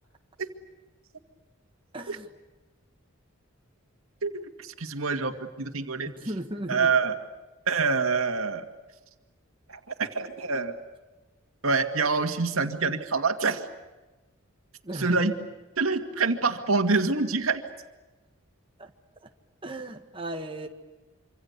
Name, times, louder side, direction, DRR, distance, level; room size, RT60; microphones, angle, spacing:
voice 1, 1.9-2.3 6.2-6.9 14.8-15.2 18.8-18.9 19.2-19.3 19.6-20.7, right 1 dB, 25° right, 3 dB, 1.7 m, -36 dB
voice 2, 4.6-6.1 6.7-7.2 7.7-8.7 9.7-10.8 11.6-13.7 14.9-15.3 15.8-17.6, right 4 dB, 85° right, 6 dB, 2.2 m, -26 dB
26.0 x 26.0 x 8.2 m, 1.1 s
head